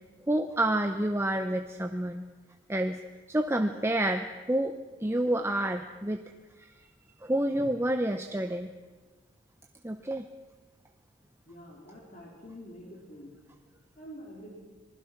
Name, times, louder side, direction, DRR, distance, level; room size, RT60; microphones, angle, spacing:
voice 1, 0.3-2.3 2.7-3.0 3.3-6.3 6.6-6.7 7.2-8.7 9.8-10.3, right 1 dB, 15° right, 6 dB, 0.7 m, -29 dB
voice 2, 11.5-13.3 14.0-14.5, equal, 40° left, -2 dB, 3.9 m, -46 dB
26.0 x 20.0 x 6.0 m, 1.3 s
head